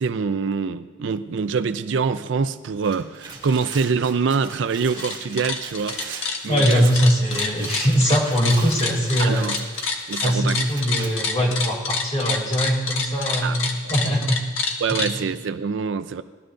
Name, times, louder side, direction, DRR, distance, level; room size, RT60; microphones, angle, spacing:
voice 1, 0.0-6.9 7.3-7.4 9.2-9.6 10.1-10.6 13.4-13.6 13.8-13.9 14.8-16.2, right 5 dB, 65° right, 12 dB, 0.4 m, -25 dB
sound 1, 2.7-11.1, right 4 dB, 25° right, 2.1 m, -40 dB
sound 2, 4.8-5.1 5.4-15.1, left 4 dB, 85° left, 1.3 m, -27 dB
voice 2, 6.5-9.5 10.2-14.4 14.9-15.0, equal, 35° left, -2 dB, 3.0 m, -21 dB
19.0 x 12.5 x 2.6 m, 1.4 s
head